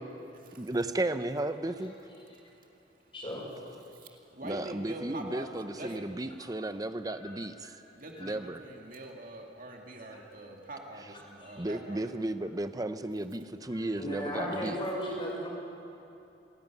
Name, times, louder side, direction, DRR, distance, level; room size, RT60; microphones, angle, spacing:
voice 1, 0.6-1.9 4.4-7.5 8.2-8.6 11.0-11.2 11.6-14.8, right 1 dB, 20° right, 10 dB, 0.7 m, -34 dB
voice 2, 3.1-3.4 5.8-5.9 8.1-8.3 11.4-11.6 13.7-15.5, equal, 30° left, -3 dB, 5.7 m, -36 dB
voice 3, 4.3-6.1 8.0-12.0, right 1 dB, 50° right, 1 dB, 2.3 m, -44 dB
27.0 x 11.0 x 9.2 m, 2.8 s
head